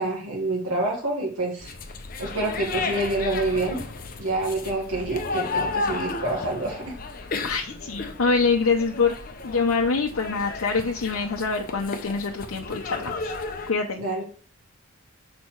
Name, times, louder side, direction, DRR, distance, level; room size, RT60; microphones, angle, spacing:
voice 1, 0.0-1.7 2.2-3.8 4.2-6.9 14.0-14.2, right 2 dB, 85° right, -2 dB, 1.6 m, -27 dB
sound 1, 1.6-13.7, left 3 dB, 40° left, 0.7 m, -33 dB
voice 2, 7.4-9.2 9.4-13.3 13.7-14.0, left 4 dB, 85° left, 1 dB, 0.7 m, -25 dB
6.3 x 4.2 x 4.6 m, 0.38 s
head